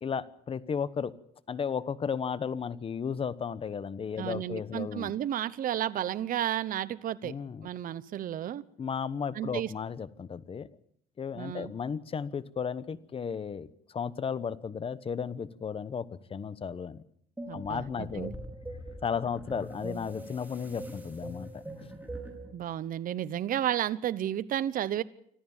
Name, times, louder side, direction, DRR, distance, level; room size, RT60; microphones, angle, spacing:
voice 1, 0.0-1.1 1.5-5.1 7.2-7.7 8.8-10.7 11.2-17.0 17.5-18.3 19.0-21.9, left 6 dB, 35° left, 16 dB, 1.1 m, -34 dB
voice 2, 4.2-7.3 7.6-8.6 9.3-9.7 11.4-11.7 17.5-18.3 22.5-25.0, right 11 dB, 55° right, 15 dB, 0.9 m, -32 dB
sound 1, 17.4-22.5, right 1 dB, 10° right, 4.9 m, -42 dB
25.5 x 14.5 x 7.3 m, 0.71 s
cardioid pair, 110°, 17 cm